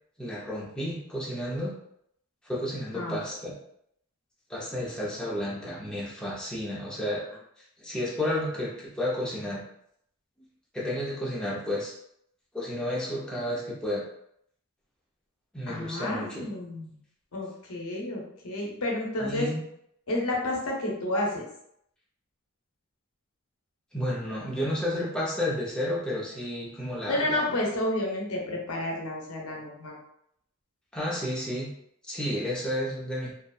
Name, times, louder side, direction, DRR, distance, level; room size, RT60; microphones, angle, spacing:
voice 1, 0.2-1.7 2.4-3.5 4.5-7.3 7.8-9.6 10.7-11.9 12.5-14.0 15.5-16.5 19.2-19.6 23.9-27.6 30.9-31.7 32.0-33.3, left 1 dB, 5° left, -6 dB, 0.5 m, -31 dB
voice 2, 15.7-17.0 17.3-19.5 20.1-21.5 27.1-29.9, left 1 dB, 85° left, -2 dB, 0.7 m, -30 dB
2.6 x 2.1 x 2.3 m, 0.73 s
head